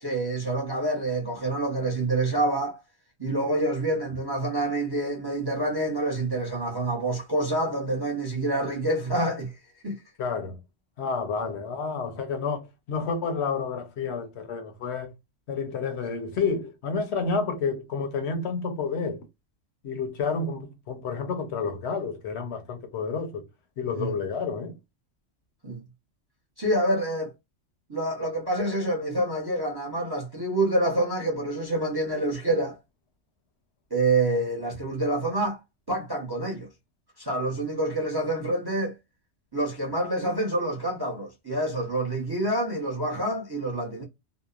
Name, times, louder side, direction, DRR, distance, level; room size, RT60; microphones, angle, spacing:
voice 1, 0.0-2.8 3.2-9.6 9.8-10.0 24.0-24.1 25.6-25.8 26.6-27.3 27.9-32.8 33.9-35.6 35.9-36.7 37.2-39.0 39.5-44.0, right 2 dB, 25° right, 0.6 m, -27 dB
voice 2, 10.2-10.6 11.0-15.1 15.5-19.2 19.8-23.4 23.8-24.7, left 5 dB, 70° left, 0.9 m, -30 dB
2.8 x 2.0 x 2.3 m
omnidirectional pair, 1.3 m